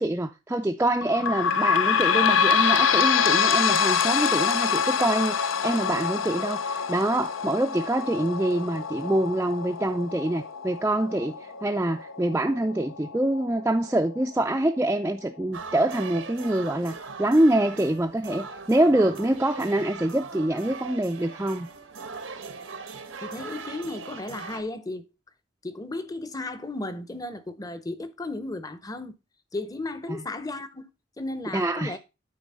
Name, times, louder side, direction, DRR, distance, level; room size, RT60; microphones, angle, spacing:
voice 1, 0.0-21.7 31.5-32.0, right 1 dB, 10° right, 0.4 m, -25 dB
sound 1, 1.0-14.2 14.7-14.8 15.1-15.2 16.0-16.1, left 6 dB, 85° left, 0.6 m, -25 dB
sound 2, 15.5-24.6, right 4 dB, 90° right, 1.1 m, -40 dB
voice 2, 23.2-25.1 25.6-29.1 29.5-30.9 31.2-32.0, left 2 dB, 20° left, 0.7 m, -34 dB
9.5 x 4.1 x 5.4 m
head